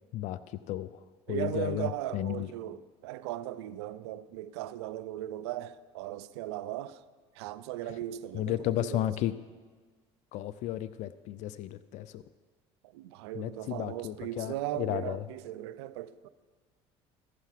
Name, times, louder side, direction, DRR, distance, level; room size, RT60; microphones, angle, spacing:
voice 1, 0.1-1.0 1.3-2.5 8.3-9.3 10.3-12.2 13.3-15.2, left 13 dB, 60° left, 0.4 m, -33 dB
voice 2, 1.3-7.0 7.3-9.1 12.9-16.3, right 13 dB, 85° right, 0.4 m, -37 dB
14.5 x 5.8 x 5.8 m
hypercardioid pair, 75°, 14 cm